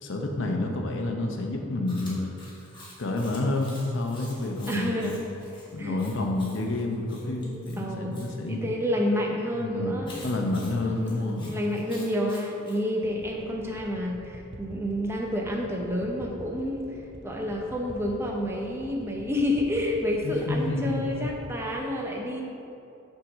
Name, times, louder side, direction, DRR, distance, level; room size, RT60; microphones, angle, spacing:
voice 1, 0.0-2.3 3.0-5.2 5.7-8.8 9.6-11.6 20.2-21.2, left 2 dB, 60° left, 1 dB, 0.7 m, -29 dB
Chewing mastication, 1.9-8.3 10.0-12.8, left 2 dB, 25° left, 1.2 m, -48 dB
voice 2, 4.6-5.2 5.8-6.0 7.2-8.2 8.5-10.2 10.8-17.0 17.2-22.4, left 1 dB, 10° right, -1 dB, 0.6 m, -29 dB
sound 1, 13.0-21.6, right 1 dB, 55° right, 0.7 m, -44 dB
5.9 x 3.8 x 6.1 m, 2.8 s
head